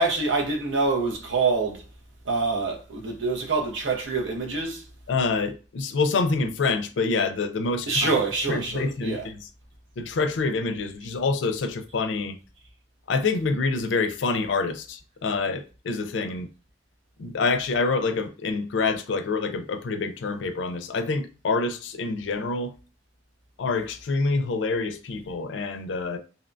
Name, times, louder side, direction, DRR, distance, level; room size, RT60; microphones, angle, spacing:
voice 1, 0.0-1.9 2.2-4.9 7.9-9.3, right 3 dB, 80° right, 0.7 m, -26 dB
voice 2, 5.1-8.1 8.5-9.4 10.0-12.4 13.1-16.5 17.2-22.7 23.6-26.2, left 4 dB, 70° left, 0.4 m, -26 dB
2.7 x 2.1 x 2.5 m
head